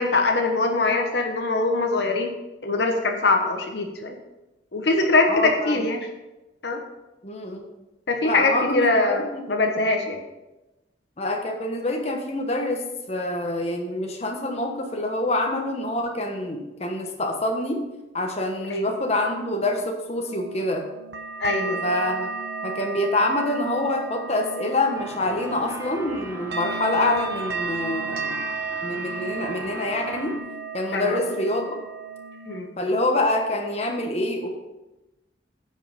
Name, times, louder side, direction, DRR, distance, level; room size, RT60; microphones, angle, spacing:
voice 1, 0.0-2.3 2.6-4.2 4.7-6.0 6.6-6.8 8.1-10.2 18.7-18.9 21.4-21.8 30.9-31.2 32.5-32.7, left 3 dB, 65° left, 3 dB, 1.0 m, -22 dB
voice 2, 5.3-5.8 7.2-7.6 8.2-9.4 11.2-17.8 18.1-20.8 21.8-22.3 22.6-28.4 28.8-30.4 30.7-31.8 32.8-34.5, left 1 dB, 35° left, 2 dB, 1.2 m, -26 dB
sound 1, 20.3-32.6, right 4 dB, 65° right, 0.8 m, -34 dB
sound 2, 24.9-30.4, right 1 dB, 20° right, 1.0 m, -40 dB
9.7 x 5.5 x 5.2 m, 1.0 s
head